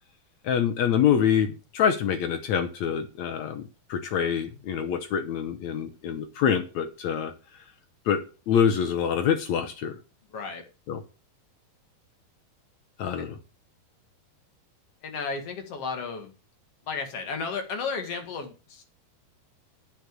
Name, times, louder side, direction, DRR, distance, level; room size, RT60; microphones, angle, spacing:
voice 1, 0.4-3.6 3.9-7.3 8.0-8.2 8.5-10.0 10.9-11.0 13.0-13.4, left 8 dB, 70° left, 8 dB, 1.8 m, -25 dB
voice 2, 10.3-10.6 13.2-13.3 15.0-16.3 16.9-18.8, left 5 dB, 45° left, 5 dB, 2.5 m, -33 dB
9.1 x 6.5 x 7.5 m, 0.33 s
omnidirectional pair, 4.2 m